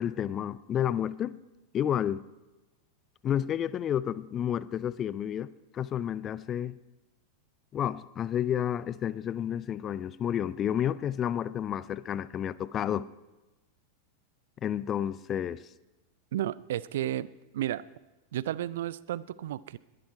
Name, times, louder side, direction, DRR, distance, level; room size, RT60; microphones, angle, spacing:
voice 1, 0.0-1.4 1.7-2.2 3.2-6.8 7.7-13.1 14.6-15.7, left 10 dB, 30° left, 0.5 m, -30 dB
voice 2, 16.3-17.8 18.3-19.8, right 12 dB, 55° right, 0.4 m, -33 dB
21.0 x 12.0 x 4.6 m
figure-of-eight pair, 90°, 0 cm